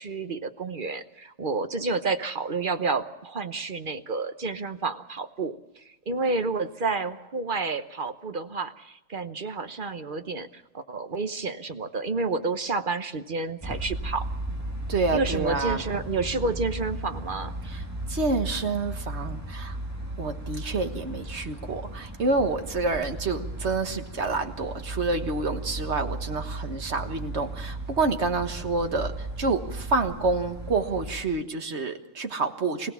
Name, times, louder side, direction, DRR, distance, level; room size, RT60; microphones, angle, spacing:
voice 1, 0.0-14.3 15.1-17.5, right 3 dB, 45° right, 9 dB, 1.1 m, -30 dB
sound 1, 13.6-31.2, right 1 dB, 10° right, 2.1 m, -36 dB
voice 2, 14.9-15.8 17.7-17.8 18.1-19.8 20.2-32.9, right 3 dB, 60° right, 6 dB, 1.8 m, -28 dB
25.0 x 17.5 x 7.2 m, 0.92 s
omnidirectional pair, 1.3 m